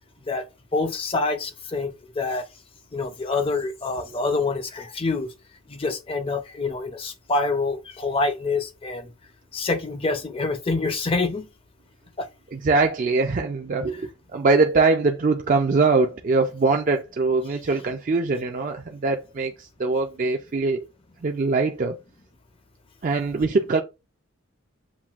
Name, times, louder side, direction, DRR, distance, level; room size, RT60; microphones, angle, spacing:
voice 1, 0.7-2.4 2.9-5.3 5.7-9.1 9.5-11.5 12.2-12.3, left 3 dB, 25° left, 0.5 m, -26 dB
voice 2, 12.5-20.8 21.2-22.0 23.0-23.8, right 3 dB, 40° right, 0.4 m, -22 dB
7.2 x 2.6 x 2.4 m
head